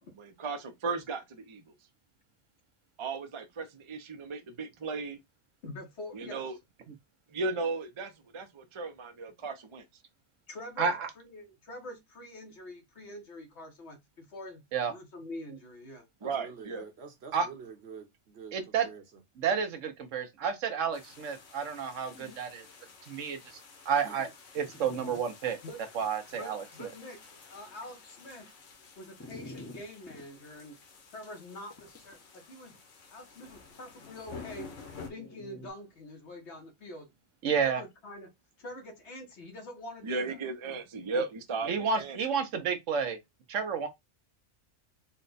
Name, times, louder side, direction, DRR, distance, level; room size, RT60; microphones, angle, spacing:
voice 1, 0.2-1.6 3.0-5.2 6.1-6.6 7.3-9.8 16.2-16.9 40.0-42.2, right 3 dB, 35° right, 0.5 m, -36 dB
voice 2, 5.6-6.6 10.5-16.1 25.6-25.8 26.3-28.5 29.0-30.8 31.1-32.8 33.1-34.7 35.0-37.1 37.6-38.3 38.6-40.8 41.1-41.2, left 1 dB, 65° left, 1.4 m, -45 dB
voice 3, 10.8-11.1 14.7-14.9 17.3-17.5 18.5-18.9 19.4-22.7 23.1-23.6 23.9-24.3 24.5-25.6 25.9-26.9 37.4-37.8 41.7-43.2 43.5-43.9, right 6 dB, 90° right, 1.2 m, -30 dB
voice 4, 16.2-19.0 24.0-24.3, right 6 dB, 60° right, 1.1 m, -47 dB
sound 1, 20.9-35.1, left 5 dB, 85° left, 1.3 m, -51 dB
Dog, 22.1-22.4 23.0-23.1 23.8-23.9 24.7-25.2 25.8-25.9 29.2-30.2 31.7-32.2 35.1-35.7, left 2 dB, 15° left, 0.7 m, -47 dB
4.2 x 2.2 x 3.9 m
omnidirectional pair, 1.2 m